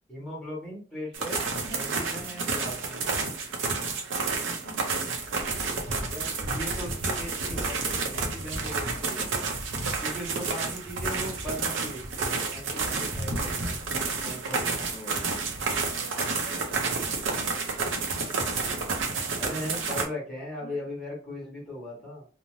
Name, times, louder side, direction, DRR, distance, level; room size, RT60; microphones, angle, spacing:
voice 1, 0.1-1.4 1.7-3.3 6.0-9.5 10.0-15.4 19.4-22.3, left 1 dB, ahead, -4 dB, 1.1 m, -39 dB
sound 1, 1.1-20.1, right 4 dB, 70° right, 0.6 m, -30 dB
voice 2, 4.3-5.0 15.9-18.8 20.6-20.8, left 1 dB, 75° left, 5 dB, 0.5 m, -47 dB
2.7 x 2.0 x 3.0 m, 0.39 s
head